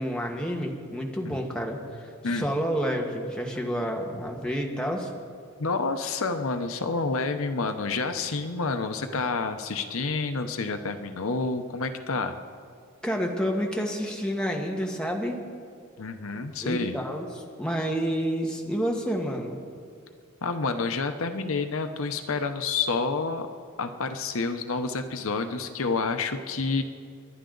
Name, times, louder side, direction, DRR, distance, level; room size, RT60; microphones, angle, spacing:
voice 1, 0.0-5.1 13.0-15.4 16.6-17.3 17.6-19.6, equal, 5° left, -1 dB, 1.5 m, -29 dB
voice 2, 5.6-12.4 16.0-17.0 20.4-23.5 23.8-26.8, left 4 dB, 75° left, 8 dB, 0.8 m, -29 dB
30.0 x 11.5 x 3.9 m, 2.2 s
head